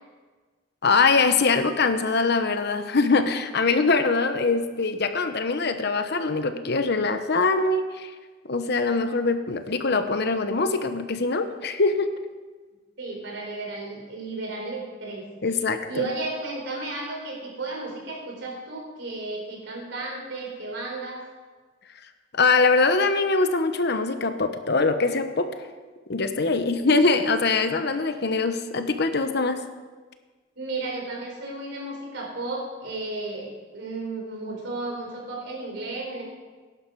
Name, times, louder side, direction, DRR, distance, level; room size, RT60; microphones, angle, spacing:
voice 1, 0.8-8.1 8.5-12.1 15.4-16.1 22.3-25.5 26.1-29.6, left 3 dB, 60° left, 8 dB, 1.0 m, -23 dB
voice 2, 13.0-15.3 15.9-21.2 30.6-36.3, right 2 dB, 70° right, -1 dB, 4.3 m, -33 dB
17.0 x 11.0 x 4.7 m, 1.4 s
head